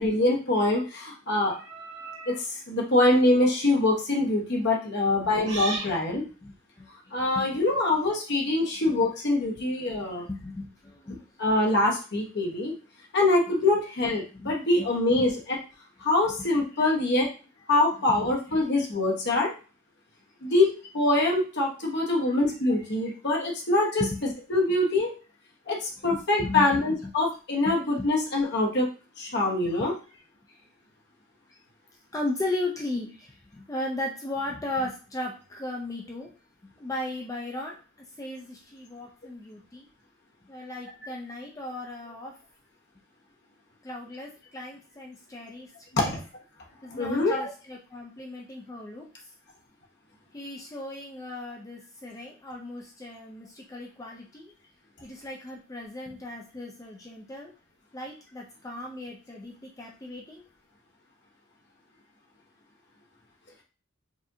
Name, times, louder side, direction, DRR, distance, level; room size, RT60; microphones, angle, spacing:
voice 1, 0.0-1.6 2.3-6.2 7.1-10.3 11.4-12.7 13.1-15.6 16.0-17.3 17.7-19.5 20.4-24.0 24.5-25.1 25.7-28.9 29.2-30.0 45.9-46.2 47.0-47.5, left 2 dB, 55° left, -2 dB, 1.1 m, -24 dB
sound 1, 1.5-2.4 3.3-3.6 5.4-6.0, right 3 dB, 60° right, 1.2 m, -36 dB
voice 2, 5.1-5.5 5.9-6.9 7.3-7.6 10.3-11.2 14.3-15.2 16.4-16.5 18.1-18.3 22.3-22.4 24.0-24.2 26.0-26.8 28.0-28.1 29.6-29.9 30.5-30.6 31.5-31.6 32.1-36.3 36.8-37.8 38.2-39.9 40.5-42.3 43.8-45.7 46.0-46.2 46.8-49.1 50.3-54.5 55.0-57.5 57.9-60.4, left 2 dB, 15° left, -1 dB, 0.4 m, -36 dB
4.9 x 2.5 x 2.7 m, 0.35 s
head